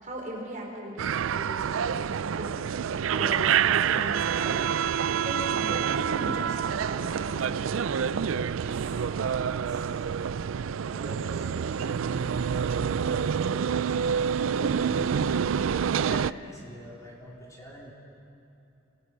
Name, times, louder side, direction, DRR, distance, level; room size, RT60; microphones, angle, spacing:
voice 1, 0.0-2.7 3.1-9.9, equal, 40° right, -1 dB, 4.2 m, -40 dB
sound 1, 1.0-16.3, right 7 dB, 85° right, 0.4 m, -27 dB
voice 2, 10.8-17.9, equal, 15° left, -4 dB, 4.0 m, -45 dB
28.5 x 18.5 x 6.1 m, 2.8 s
head